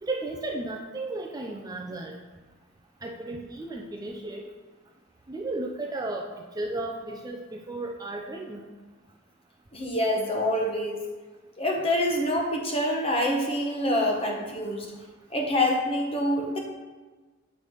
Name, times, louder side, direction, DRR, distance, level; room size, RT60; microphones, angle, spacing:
voice 1, 0.0-2.2 3.0-4.5 5.3-6.3 6.6-8.6, right 2 dB, 20° right, 0 dB, 0.4 m, -34 dB
voice 2, 9.7-11.0 11.6-14.9 15.3-16.6, left 1 dB, 25° left, 1 dB, 0.9 m, -26 dB
7.8 x 3.3 x 5.4 m, 1.3 s
head